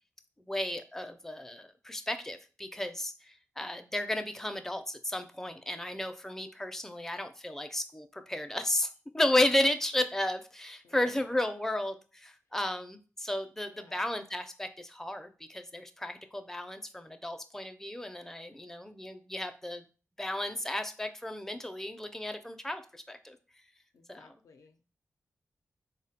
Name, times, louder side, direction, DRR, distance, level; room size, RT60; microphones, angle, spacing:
voice 1, 0.4-19.8 20.2-23.4 24.1-24.3, left 1 dB, 5° left, 7 dB, 0.4 m, -33 dB
voice 2, 10.8-11.2 13.7-14.1 23.9-24.8, left 4 dB, 80° left, 6 dB, 0.4 m, -57 dB
3.5 x 2.1 x 2.7 m, 0.37 s
cardioid pair, 40°, 6 cm